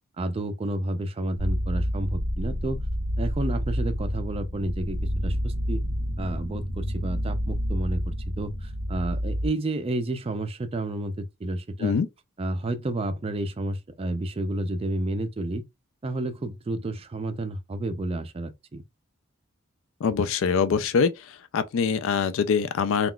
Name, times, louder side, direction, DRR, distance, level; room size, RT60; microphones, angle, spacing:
voice 1, 0.2-2.9 3.2-5.0 5.2-5.8 6.2-11.9 12.4-15.6 16.0-18.8, right 1 dB, 25° right, 0.4 m, -30 dB
sound 1, 1.4-9.5, equal, 85° left, 0.7 m, -29 dB
voice 2, 20.0-23.1, left 6 dB, 60° left, 0.3 m, -24 dB
3.6 x 2.3 x 2.2 m
head